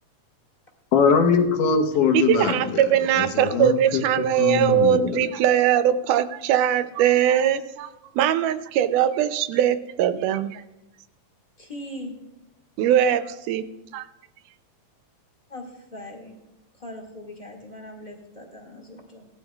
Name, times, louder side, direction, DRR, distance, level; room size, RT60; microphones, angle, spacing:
voice 1, 0.9-2.6 3.2-4.0 4.4-5.2, left 6 dB, 75° left, 4 dB, 2.5 m, -21 dB
voice 2, 2.1-7.9 8.2-10.6 12.8-13.6 13.9-14.1, right 10 dB, 80° right, 11 dB, 2.0 m, -21 dB
voice 3, 11.6-12.1 15.5-16.3 16.8-19.3, left 1 dB, 20° left, 1 dB, 1.3 m, -40 dB
18.0 x 12.5 x 2.3 m, 0.95 s
omnidirectional pair, 3.8 m